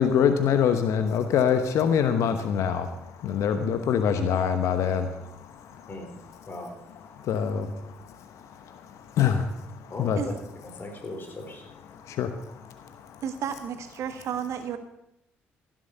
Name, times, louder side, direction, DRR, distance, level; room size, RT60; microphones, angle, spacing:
voice 1, 0.0-2.9 3.2-5.1 7.3-7.7 9.2-9.4 10.0-10.2 12.2-12.3, left 8 dB, 70° left, 9 dB, 1.0 m, -23 dB
voice 2, 3.5-3.9 5.9-6.1 6.5-6.7 9.9-10.2 10.6-11.6, left 2 dB, 40° left, 3 dB, 4.4 m, -39 dB
voice 3, 13.2-14.8, right 8 dB, 65° right, 8 dB, 1.5 m, -32 dB
16.0 x 7.7 x 6.6 m, 0.83 s
hypercardioid pair, 50°, 5 cm